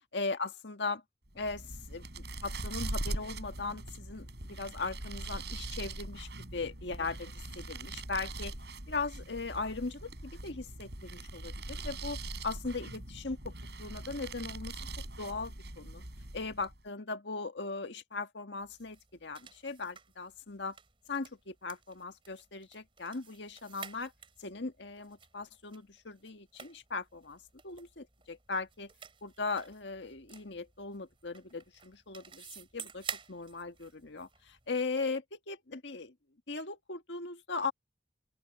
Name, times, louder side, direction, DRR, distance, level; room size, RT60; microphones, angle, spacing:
voice 1, 0.1-1.0 1.4-8.5 8.9-12.2 12.4-13.5 13.8-14.7 15.2-16.0 16.3-20.8 21.1-24.1 24.4-28.9 29.2-36.1 36.5-37.7, left 3 dB, 75° left, 1.6 m, -39 dB
sound 1, 1.3-16.8, right 2 dB, 65° right, 7.0 m, -42 dB
sound 2, 18.6-34.7, right 6 dB, 30° right, 4.1 m, -51 dB
open air
head